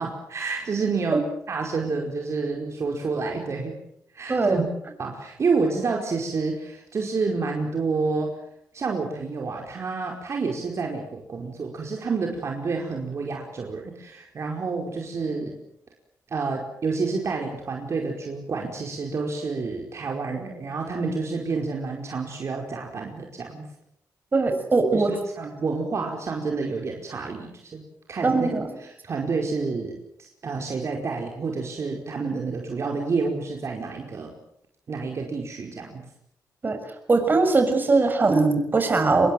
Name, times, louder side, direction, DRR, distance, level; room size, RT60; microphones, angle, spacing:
voice 1, 0.0-3.7 4.1-4.7 5.0-8.4 8.7-15.6 16.3-23.6 24.9-27.8 28.1-28.6 29.0-34.3 34.9-36.0, right 4 dB, 50° right, 1 dB, 4.9 m, -29 dB
voice 2, 4.3-4.6 24.3-25.1 28.2-28.6 36.6-36.8 37.1-39.3, right 3 dB, 30° right, 6 dB, 6.8 m, -20 dB
26.5 x 22.5 x 7.9 m, 0.75 s
cardioid pair, 100°, 6 cm